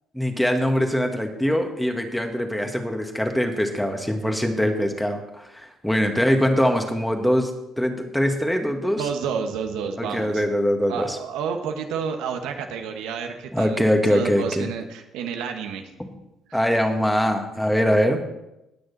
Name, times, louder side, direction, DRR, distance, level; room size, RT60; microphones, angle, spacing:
voice 1, 0.1-7.5 7.8-9.0 10.0-11.2 13.5-14.7 16.0-16.1 16.5-18.2, equal, 5° left, 5 dB, 1.6 m, -22 dB
voice 2, 9.0-10.4 10.9-13.8 14.1-15.9 16.5-16.6, right 6 dB, 85° right, 4 dB, 1.3 m, -30 dB
18.5 x 6.4 x 4.1 m, 0.93 s
cardioid pair, 90°, 0 cm